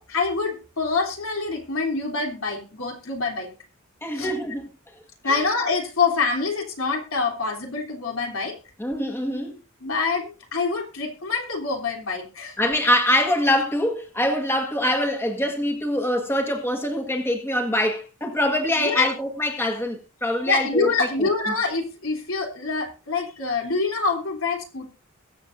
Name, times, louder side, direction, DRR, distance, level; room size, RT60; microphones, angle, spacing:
voice 1, 0.0-3.5 4.1-4.3 5.2-8.6 9.8-12.6 18.8-19.1 20.5-24.9, left 4 dB, 75° left, 3.4 m, -26 dB
voice 2, 4.0-4.7 5.2-5.4 8.8-9.6 12.6-21.3, left 1 dB, 10° left, 1.5 m, -24 dB
22.5 x 7.5 x 2.7 m
head